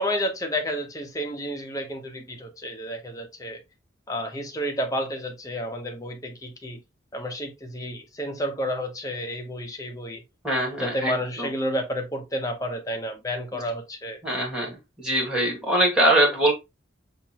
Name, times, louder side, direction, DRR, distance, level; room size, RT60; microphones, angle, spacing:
voice 1, 0.0-3.6 4.1-6.8 7.1-10.2 10.8-14.2, equal, 15° left, 0.8 m, -30 dB
voice 2, 10.4-11.1 14.2-14.7 15.0-16.5, right 1 dB, 5° right, 1.6 m, -22 dB
5.8 x 2.6 x 2.9 m
head